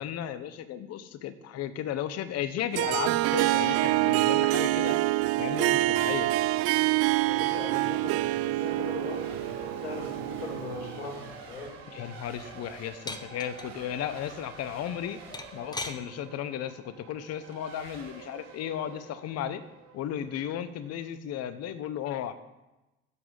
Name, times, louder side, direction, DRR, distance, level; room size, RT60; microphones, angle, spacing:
voice 1, 0.0-5.0 5.4-6.3 11.9-15.2 15.5-19.6 19.9-22.3, left 10 dB, 55° left, 13 dB, 0.9 m, -35 dB
Harp, 2.7-11.2, right 18 dB, 50° right, 0.4 m, -26 dB
voice 2, 7.2-11.8, left 3 dB, 85° left, 0 dB, 2.6 m, -40 dB
Race car auto racing / Accelerating revving vroom / Mechanisms, 8.6-21.1, right 4 dB, 75° right, 3.8 m, -48 dB
sound 1, 13.1-13.7 15.3-16.0 17.5-17.8, left 2 dB, 15° left, 1.0 m, -37 dB
15.5 x 7.2 x 4.0 m, 1.0 s
hypercardioid pair, 65°, 31 cm